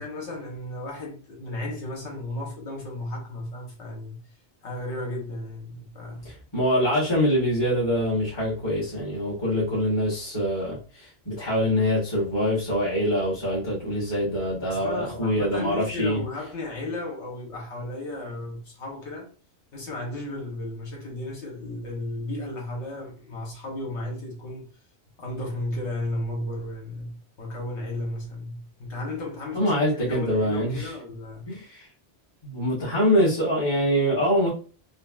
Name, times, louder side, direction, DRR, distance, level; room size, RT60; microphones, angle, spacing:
voice 1, 0.0-4.2 4.6-6.3 14.7-19.3 19.7-24.7 25.2-31.5, left 1 dB, 80° left, 1.3 m, -34 dB
voice 2, 6.2-16.2 29.5-30.9 31.5-31.9 32.4-34.5, equal, 25° left, 1.1 m, -24 dB
3.9 x 2.0 x 2.3 m
omnidirectional pair, 1.2 m